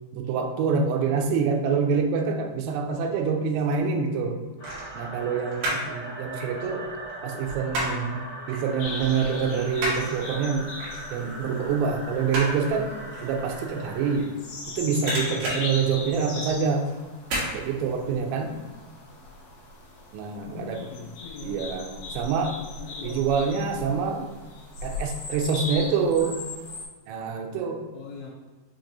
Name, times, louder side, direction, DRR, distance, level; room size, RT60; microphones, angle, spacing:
voice 1, 0.1-4.4 5.0-6.9 7.2-8.2 8.5-10.7 11.1-12.9 13.2-14.3 14.8-16.9 17.5-18.6 20.1-20.8 21.4-22.5 23.0-24.3 24.8-26.4 27.1-27.8, right 5 dB, 85° right, 3 dB, 2.8 m, -26 dB
sound 1, 3.1-3.7 4.6-6.0 6.2-8.1 8.5-8.7 9.0-14.6 14.9-16.6 17.2-17.5 17.9-18.0, right 1 dB, 70° right, 3.1 m, -32 dB
sound 2, 4.6-14.2, right 1 dB, 55° left, 1.9 m, -40 dB
sound 3, 8.8-26.9, left 3 dB, 70° left, 2.3 m, -39 dB
voice 2, 15.3-15.9 20.4-21.6 22.8-23.6 27.9-28.3, left 6 dB, 85° left, -3 dB, 2.1 m, -41 dB
7.0 x 2.9 x 2.6 m, 1.3 s
omnidirectional pair, 5.0 m